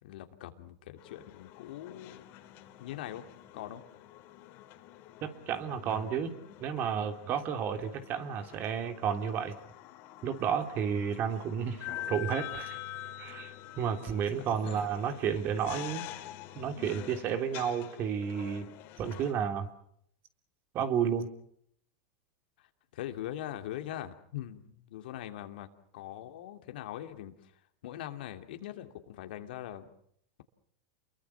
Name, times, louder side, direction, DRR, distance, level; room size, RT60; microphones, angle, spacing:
voice 1, 0.0-2.3 2.8-3.2 3.5-3.8 14.6-14.9 22.9-25.7 25.9-29.9, left 12 dB, 75° left, 7 dB, 2.8 m, -42 dB
sound 1, 1.0-19.3, left 14 dB, 50° left, 3.6 m, -46 dB
voice 2, 5.2-6.3 6.6-9.5 10.2-12.8 13.2-16.0 16.5-18.7 19.0-19.7 20.7-21.3, right 7 dB, 40° right, 7 dB, 3.3 m, -32 dB
29.5 x 23.0 x 5.9 m, 0.68 s
supercardioid pair, 120°, 5 cm